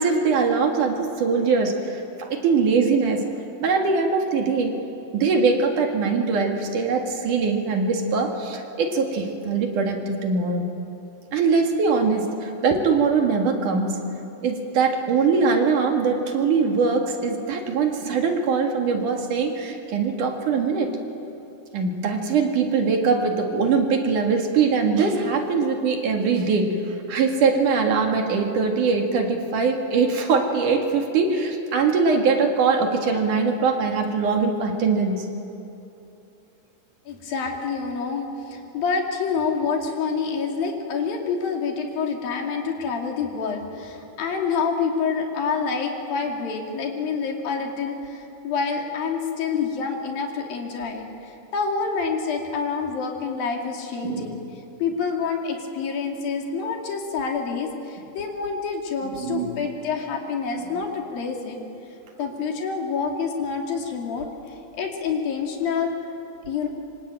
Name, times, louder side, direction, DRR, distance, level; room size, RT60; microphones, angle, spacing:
voice 1, 0.0-3.3 3.6-4.7 5.1-10.6 11.3-14.0 14.4-21.0 21.7-35.3 54.0-54.4 59.0-59.6 60.6-60.8 62.2-62.3, right 4 dB, 60° right, 3 dB, 3.4 m, -22 dB
voice 2, 37.1-54.4 54.8-61.6 62.2-64.3 64.8-65.9 66.5-66.7, left 5 dB, 70° left, 2 dB, 4.3 m, -27 dB
25.5 x 25.5 x 9.1 m, 2.8 s
omnidirectional pair, 4.3 m